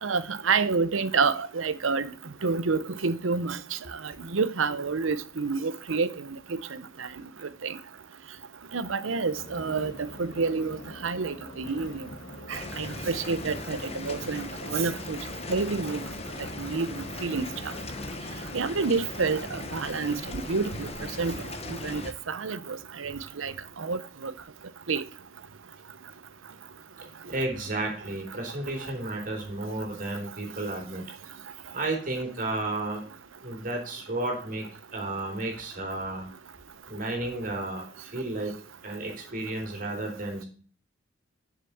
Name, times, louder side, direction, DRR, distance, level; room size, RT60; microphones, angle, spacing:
voice 1, 0.0-2.1 2.4-3.6 4.3-6.1 6.5-6.6 7.0-7.1 7.6-7.7 8.7-10.8 11.0-12.0 12.5-15.2 15.5-16.0 16.6-17.5 18.5-20.9 21.2-21.3 21.8-22.0 22.3-23.5 23.8-24.3 24.9-25.0, right 4 dB, 90° right, 0.8 m, -28 dB
sound 1, 9.3-18.1, left 1 dB, 85° left, 2.6 m, -45 dB
sound 2, 12.5-22.1, left 2 dB, 30° left, 1.0 m, -38 dB
voice 2, 27.3-31.0 31.7-33.0 33.4-34.7 34.9-36.3 36.9-37.8 38.1-38.5 38.8-40.4, right 2 dB, 45° right, 3.6 m, -32 dB
7.8 x 6.7 x 7.1 m
head